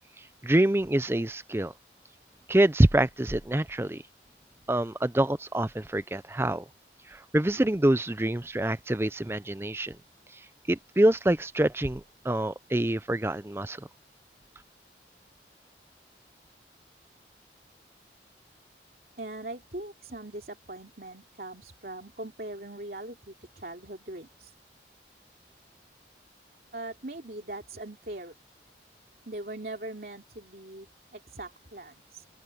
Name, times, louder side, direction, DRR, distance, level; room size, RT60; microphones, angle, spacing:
voice 1, 0.2-1.7 2.5-4.0 4.7-6.7 7.1-10.0 10.7-13.9, right 1 dB, 15° right, 0.5 m, -26 dB
voice 2, 19.2-24.5 26.7-28.3 29.3-32.3, right 2 dB, 55° right, 3.1 m, -41 dB
open air
head